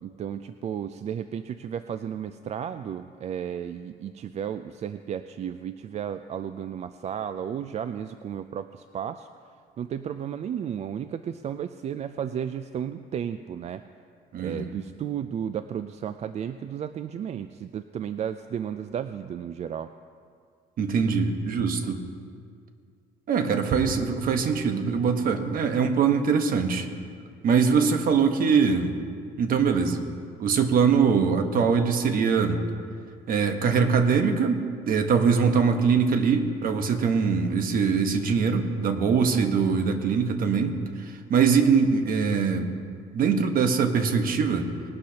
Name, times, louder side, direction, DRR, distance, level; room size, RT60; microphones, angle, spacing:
voice 1, 0.0-13.8 14.4-19.9 39.3-39.8, right 8 dB, 40° right, 11 dB, 0.4 m, -33 dB
voice 2, 14.3-14.7 20.8-22.0 23.3-26.9 27.4-29.0 29.4-30.1 30.4-32.6 33.3-42.7 43.1-44.7, right 5 dB, 55° right, 6 dB, 1.2 m, -23 dB
20.0 x 12.0 x 2.9 m, 2.2 s
cardioid pair, 110°, 17 cm